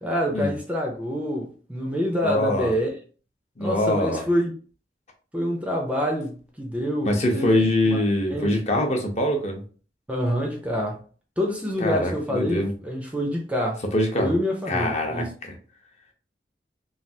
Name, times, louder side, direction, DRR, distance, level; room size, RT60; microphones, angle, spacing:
voice 1, 0.0-2.9 3.6-4.5 5.3-7.5 7.9-8.0 8.3-8.5 10.1-11.0 11.4-13.8 14.2-15.3, equal, 10° right, 0.4 m, -26 dB
voice 2, 2.2-2.8 3.6-4.3 7.0-9.6 11.8-12.7 13.9-14.3 14.7-15.2, left 1 dB, 40° left, 0.7 m, -23 dB
3.2 x 2.3 x 2.7 m
head